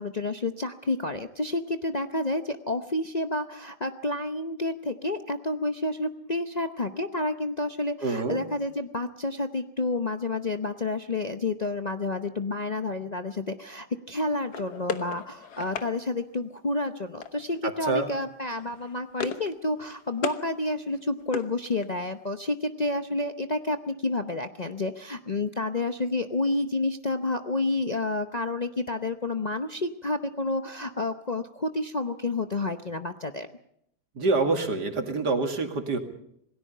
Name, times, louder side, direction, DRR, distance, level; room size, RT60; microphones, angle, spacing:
voice 1, 0.0-33.5, left 2 dB, 35° left, 7 dB, 0.7 m, -30 dB
voice 2, 8.0-8.4 17.9-18.1 34.2-36.0, right 3 dB, 80° right, 5 dB, 2.9 m, -26 dB
sound 1, 14.5-15.9 17.2-17.6 17.9-18.2 18.5-19.5 19.8-20.4 20.8-22.1, left 6 dB, 70° left, 1.8 m, -36 dB
27.0 x 19.0 x 5.5 m, 0.73 s
omnidirectional pair, 1.8 m